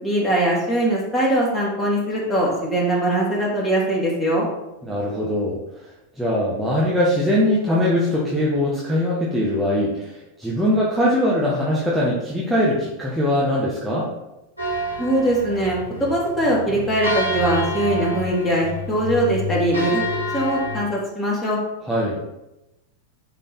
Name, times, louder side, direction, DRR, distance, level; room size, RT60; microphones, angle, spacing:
voice 1, 0.0-4.5 15.0-20.0 20.3-21.6, right 1 dB, 15° left, -4 dB, 3.0 m, -21 dB
voice 2, 4.8-5.6 6.2-14.1 21.9-22.2, left 1 dB, ahead, -7 dB, 1.5 m, -21 dB
sound 1, 14.6-20.8, left 1 dB, 90° right, 2.9 m, -28 dB
10.0 x 4.1 x 4.3 m, 0.96 s
figure-of-eight pair, 90°, 0 cm